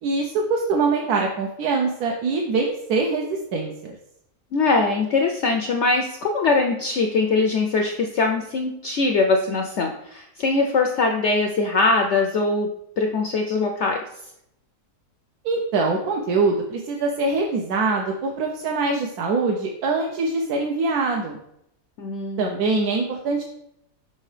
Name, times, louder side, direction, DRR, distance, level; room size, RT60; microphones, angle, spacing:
voice 1, 0.0-4.0 15.4-21.4 22.4-23.4, right 3 dB, 70° right, 1 dB, 1.1 m, -23 dB
voice 2, 4.5-12.7 13.0-14.0 22.0-22.5, left 3 dB, 70° left, 3 dB, 0.6 m, -22 dB
5.6 x 5.5 x 3.2 m, 0.78 s
omnidirectional pair, 1.7 m